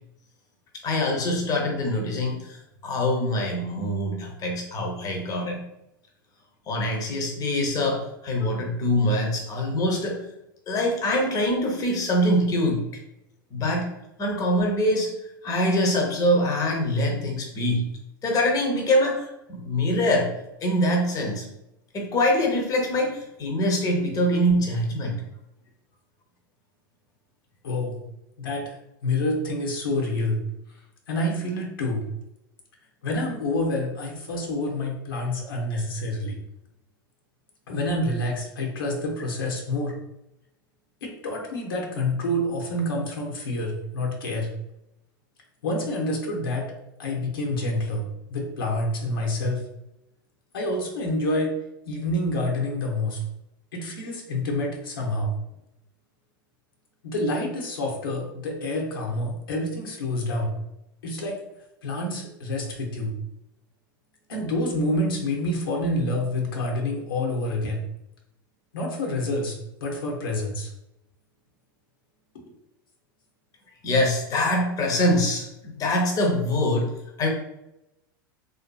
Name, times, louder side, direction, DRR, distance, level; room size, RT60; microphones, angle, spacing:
voice 1, 0.8-5.6 6.7-10.2 10.7-12.9 13.5-13.9 14.2-15.1 15.4-17.8 18.2-20.3 20.6-21.5 21.9-25.2 73.8-76.9 77.2-77.3, left 1 dB, 30° left, 1 dB, 0.6 m, -24 dB
voice 2, 27.6-28.0 28.4-28.8 29.0-30.4 31.1-32.0 33.0-36.4 37.7-40.0 41.0-44.5 45.6-46.7 47.0-49.6 50.5-51.6 51.9-53.2 53.7-55.3 57.0-60.6 61.0-61.4 61.8-63.2 64.3-67.9 68.7-69.5 69.8-70.7, left 1 dB, 85° left, -1 dB, 0.7 m, -27 dB
2.6 x 2.5 x 2.2 m, 0.85 s
hypercardioid pair, 100°, 11 cm